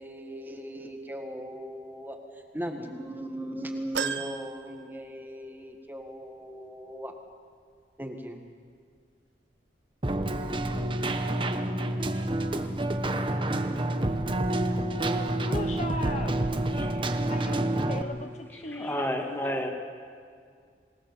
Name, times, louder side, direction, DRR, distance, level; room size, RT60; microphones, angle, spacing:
voice 1, 0.0-7.1 8.0-8.4, equal, 10° right, 3 dB, 1.7 m, -38 dB
sound 1, 3.9-5.6 6.0-6.1 7.3-7.4, right 6 dB, 80° right, 0.9 m, -36 dB
Keyboard (musical), 10.0-18.0, right 1 dB, 30° right, 1.1 m, -28 dB
voice 2, 15.4-16.4 17.3-19.6, left 2 dB, 40° left, 6 dB, 1.0 m, -38 dB
voice 3, 16.8-17.2 18.7-19.7, equal, 15° left, 2 dB, 2.5 m, -32 dB
27.0 x 19.0 x 7.3 m, 2.1 s
head